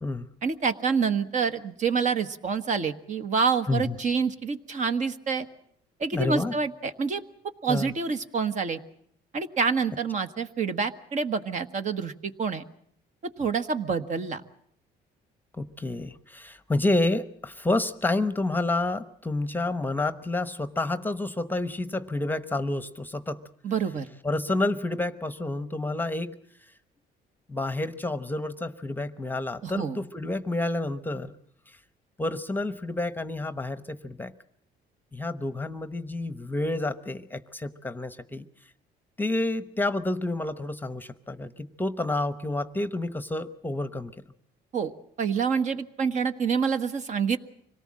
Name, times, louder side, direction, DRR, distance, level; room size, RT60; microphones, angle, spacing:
voice 1, 0.4-5.5 6.0-7.2 7.6-8.8 9.3-12.6 13.2-14.4 23.6-24.1 29.6-30.0 44.7-44.9 45.2-47.4, right 5 dB, 45° right, 10 dB, 1.4 m, -27 dB
voice 2, 6.1-6.5 7.7-7.9 15.5-23.4 24.2-26.4 27.5-31.3 31.7-31.8 32.2-34.3 35.1-38.4 39.2-44.1, left 2 dB, 10° left, 13 dB, 0.9 m, -29 dB
25.5 x 18.5 x 7.6 m, 0.68 s
cardioid pair, 110°, 17 cm